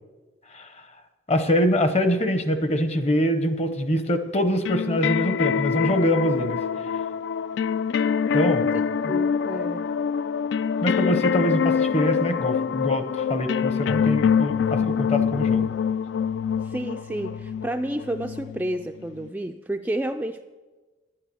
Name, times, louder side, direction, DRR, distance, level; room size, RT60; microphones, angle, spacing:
voice 1, 1.3-6.6 8.3-8.7 9.0-9.2 10.8-15.7, equal, 35° left, 9 dB, 0.8 m, -24 dB
sound 1, 4.7-19.3, left 7 dB, 75° left, 0.3 m, -25 dB
voice 2, 9.1-9.8 16.6-20.4, right 1 dB, 10° right, 5 dB, 0.3 m, -30 dB
11.5 x 8.8 x 6.8 m, 1.3 s
head